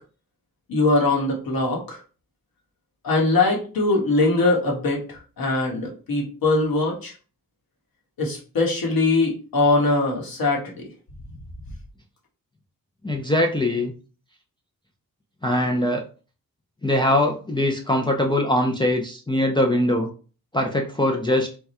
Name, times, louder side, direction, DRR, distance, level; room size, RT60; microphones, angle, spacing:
voice 1, 0.7-2.0 3.0-7.1 8.2-10.9, left 2 dB, 75° left, -1 dB, 1.5 m, -22 dB
voice 2, 13.0-13.9 15.4-16.0 16.8-20.1 20.5-21.5, left 1 dB, 15° left, 1 dB, 0.6 m, -22 dB
3.6 x 2.3 x 4.2 m, 0.37 s
cardioid pair, 95°, 36 cm